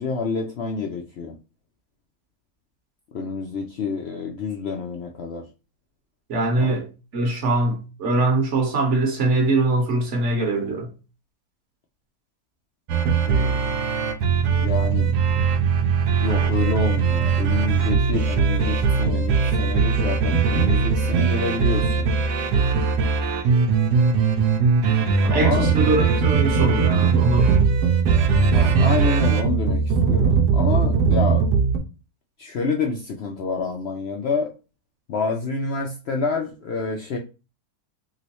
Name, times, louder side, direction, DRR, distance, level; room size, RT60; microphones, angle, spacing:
voice 1, 0.0-1.3 3.1-5.5 6.6-6.7 13.2-13.7 14.5-15.1 16.2-22.1 25.3-25.7 28.4-29.8 30.1-31.6 32.4-34.5 35.1-37.2, left 4 dB, 70° left, 0.6 m, -28 dB
voice 2, 6.3-6.9 7.1-10.9 25.2-27.5, right 2 dB, 55° right, 1.1 m, -22 dB
sound 1, 12.9-31.8, right 5 dB, 85° right, 1.1 m, -20 dB
3.0 x 3.0 x 2.8 m
omnidirectional pair, 1.7 m